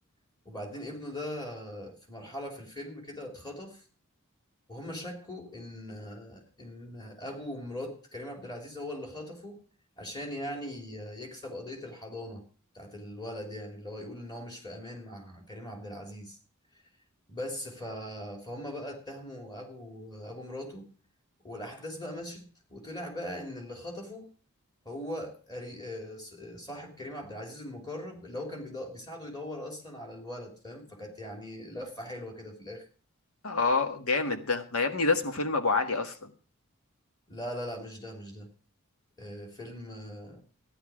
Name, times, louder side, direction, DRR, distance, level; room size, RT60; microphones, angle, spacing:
voice 1, 0.4-3.8 4.7-9.6 10.0-12.4 12.7-16.4 17.3-20.9 21.4-24.3 24.8-32.9 37.3-38.5 39.2-40.4, left 1 dB, 20° left, 3.3 m, -40 dB
voice 2, 33.4-36.3, left 3 dB, 80° left, 1.5 m, -27 dB
14.5 x 10.5 x 5.0 m
head